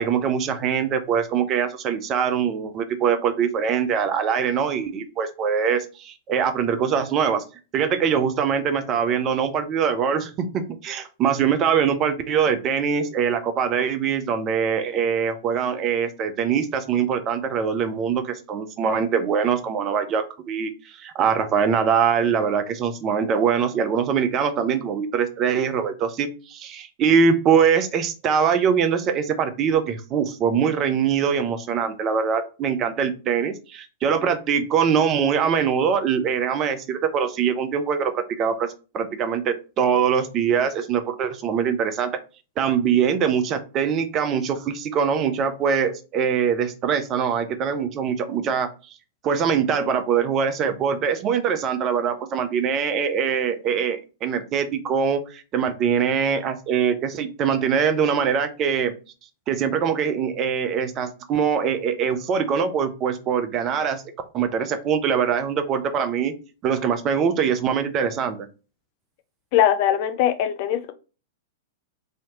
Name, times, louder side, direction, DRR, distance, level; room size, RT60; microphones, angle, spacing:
voice 1, 0.0-7.4 7.7-42.1 42.6-48.7 49.2-58.9 59.5-64.0 64.3-66.3 66.6-68.5, right 7 dB, 30° right, 0.5 m, -23 dB
voice 2, 69.5-70.9, left 10 dB, 45° left, 0.4 m, -21 dB
3.1 x 2.8 x 2.7 m
figure-of-eight pair, 100°, 0 cm